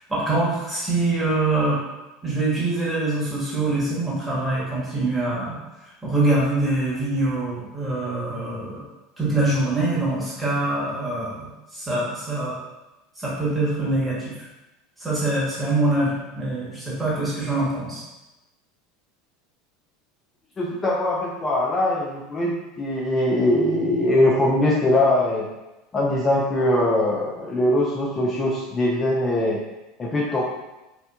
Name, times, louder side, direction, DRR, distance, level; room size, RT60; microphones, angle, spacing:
voice 1, 0.1-1.8 2.2-5.6 6.0-8.8 9.2-11.4 11.7-12.5 13.2-14.3 15.0-18.0, right 2 dB, 15° right, -7 dB, 1.1 m, -24 dB
voice 2, 20.6-25.5 25.9-29.6 30.0-30.4, left 1 dB, 25° left, -3 dB, 0.4 m, -21 dB
2.8 x 2.1 x 2.3 m, 1.0 s
figure-of-eight pair, 75°, 0 cm